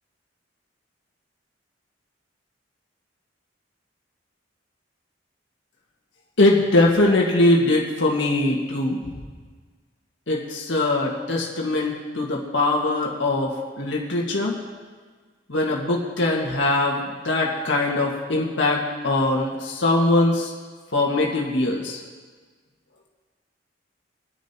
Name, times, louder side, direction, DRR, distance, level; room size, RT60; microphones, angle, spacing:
voice 1, 6.4-9.2 10.3-14.6 15.5-17.0 17.2-20.5 20.9-22.0, left 2 dB, 75° left, -2 dB, 1.8 m, -21 dB
22.5 x 10.0 x 2.9 m, 1.5 s
head